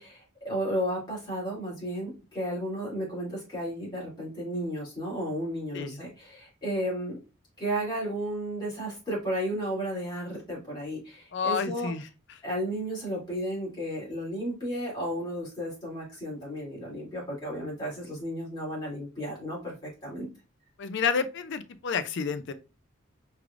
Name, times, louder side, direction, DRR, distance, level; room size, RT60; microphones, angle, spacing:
voice 1, 0.0-7.2 7.6-11.9 12.4-20.3, equal, 20° left, 2.4 m, -33 dB
voice 2, 11.3-12.0 20.8-22.5, left 5 dB, 55° left, 0.4 m, -29 dB
4.7 x 3.3 x 2.4 m
head